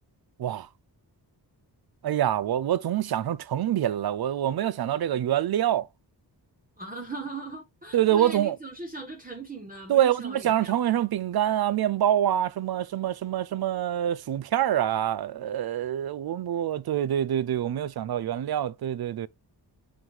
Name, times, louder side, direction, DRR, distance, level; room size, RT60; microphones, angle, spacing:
voice 1, 2.0-5.9 7.9-8.6 9.9-19.3, right 11 dB, 60° right, 0.5 m, -26 dB
voice 2, 6.8-10.8, right 3 dB, 20° right, 1.1 m, -39 dB
5.8 x 5.4 x 3.1 m
wide cardioid pair, 110°, 42 cm